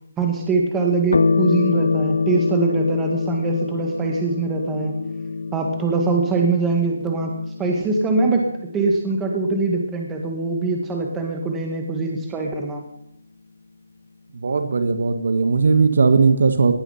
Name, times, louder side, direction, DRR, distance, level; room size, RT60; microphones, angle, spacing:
voice 1, 0.2-5.0 5.5-7.3 7.6-8.4 8.7-12.8, right 3 dB, 10° right, 1 dB, 1.9 m, -23 dB
sound 1, 1.1-10.0, left 4 dB, 70° left, 0.8 m, -25 dB
voice 2, 14.3-16.7, right 4 dB, 60° right, 9 dB, 1.6 m, -18 dB
18.0 x 10.0 x 5.7 m, 0.78 s
hypercardioid pair, 170°, 0 cm